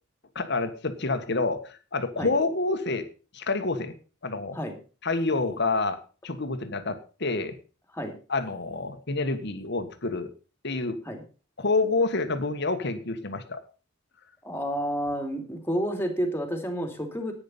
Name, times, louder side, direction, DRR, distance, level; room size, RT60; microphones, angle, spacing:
voice 1, 0.3-3.1 3.3-3.9 4.2-4.6 5.0-6.0 6.2-7.6 8.3-10.3 10.6-11.0 11.6-13.6, left 3 dB, 60° left, 10 dB, 1.6 m, -28 dB
voice 2, 14.4-17.3, equal, 10° left, 4 dB, 2.8 m, -30 dB
11.0 x 9.8 x 5.5 m, 0.35 s
head